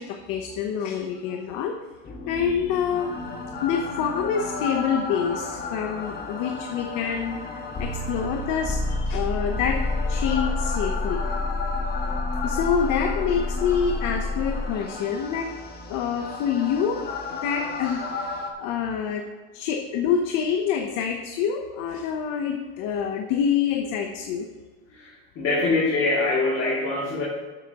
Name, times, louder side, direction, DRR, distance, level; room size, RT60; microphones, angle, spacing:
voice 1, 0.0-1.8 2.3-3.2 3.6-9.8 10.1-11.2 12.4-15.5 15.9-17.1 17.4-19.2 19.5-24.5, left 7 dB, 75° left, 4 dB, 0.9 m, -26 dB
sound 1, 2.0-18.5, left 3 dB, 30° left, 1.4 m, -30 dB
voice 2, 24.9-27.3, left 3 dB, 50° left, -5 dB, 2.6 m, -24 dB
12.0 x 8.0 x 3.0 m, 1.3 s
cardioid pair, 135°, 32 cm